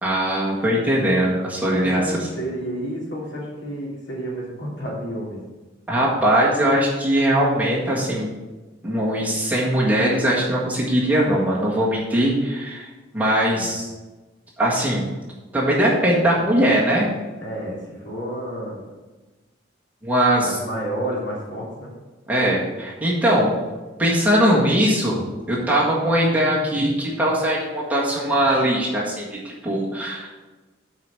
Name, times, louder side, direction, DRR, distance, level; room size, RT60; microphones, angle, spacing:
voice 1, 0.0-2.0 5.9-8.3 8.8-12.9 13.1-13.9 14.6-15.1 15.5-17.1 20.0-20.6 22.3-23.5 24.0-25.2 25.5-30.3, right 1 dB, 10° right, -6 dB, 1.7 m, -20 dB
voice 2, 1.8-5.4 13.5-13.7 17.4-18.8 20.4-21.9, right 1 dB, 70° left, -4 dB, 2.9 m, -30 dB
8.1 x 5.0 x 6.8 m, 1.2 s
head